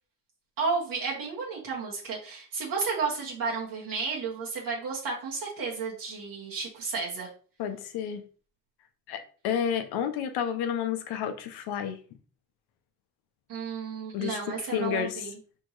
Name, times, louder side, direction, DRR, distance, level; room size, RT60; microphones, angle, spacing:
voice 1, 0.6-7.3 13.5-15.3, right 4 dB, 65° right, -3 dB, 1.6 m, -32 dB
voice 2, 7.6-8.2 9.1-12.0 14.1-15.3, left 8 dB, 85° left, 7 dB, 0.8 m, -31 dB
4.4 x 3.6 x 3.2 m, 0.39 s
cardioid pair, 110°, 37 cm